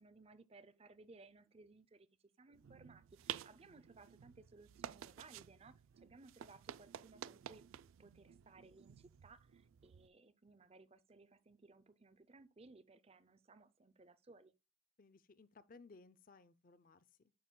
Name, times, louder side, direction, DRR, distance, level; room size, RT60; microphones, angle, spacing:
voice 1, 0.0-2.1 2.4-7.7 8.0-14.5, right 3 dB, 30° right, 0.5 m, -62 dB
sound 1, 2.5-10.1, right 10 dB, 85° right, 0.3 m, -52 dB
voice 2, 15.0-17.3, left 3 dB, 45° left, 0.6 m, -61 dB
9.3 x 7.2 x 2.2 m
head